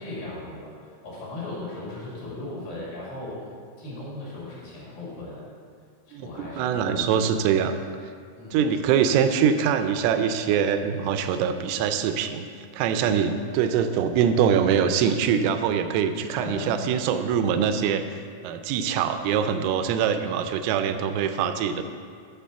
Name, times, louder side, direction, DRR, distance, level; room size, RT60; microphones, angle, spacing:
voice 1, 0.0-3.5 3.8-5.4 6.1-7.3 8.4-8.6 9.0-9.2 16.4-16.8, left 2 dB, 55° left, -6 dB, 3.1 m, -37 dB
voice 2, 6.6-7.8 8.5-12.5 12.7-18.2 18.4-21.8, right 7 dB, 85° right, 8 dB, 3.1 m, -23 dB
9.2 x 4.8 x 6.8 m, 2.1 s
omnidirectional pair, 5.7 m